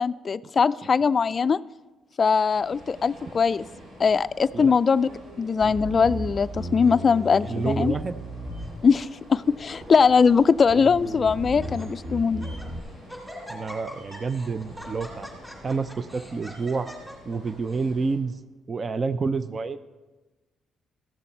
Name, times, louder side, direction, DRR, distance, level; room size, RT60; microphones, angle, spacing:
voice 1, 0.0-1.6 2.2-3.7 4.0-5.1 5.4-7.9 8.8-12.4, left 5 dB, 40° left, 16 dB, 0.3 m, -21 dB
sound 1, 2.5-18.2, equal, 80° right, 3.5 m, -47 dB
Bass guitar, 5.6-9.2 9.8-10.3 10.7-12.8, equal, 55° right, 2.2 m, -35 dB
Laughter, 6.8-7.7 8.4-8.7 9.0-9.1 9.9-10.5 11.0-11.1 11.5-11.9 12.3-12.7 13.1-17.9, equal, 5° right, 3.1 m, -44 dB
voice 2, 7.4-8.2 13.5-15.3 15.6-16.9 17.3-18.4 18.7-19.8, right 4 dB, 35° right, 13 dB, 0.4 m, -28 dB
14.5 x 7.0 x 4.4 m, 1.2 s
cardioid pair, 90°, 0 cm